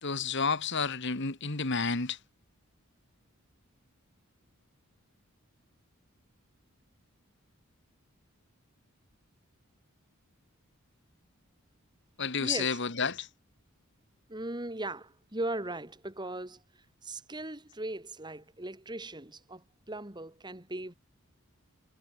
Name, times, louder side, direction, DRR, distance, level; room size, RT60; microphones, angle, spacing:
voice 1, 0.0-2.2 12.2-13.3, left 5 dB, 55° left, 2.0 m, -30 dB
voice 2, 12.4-12.8 14.3-21.0, right 2 dB, 20° right, 2.3 m, -39 dB
head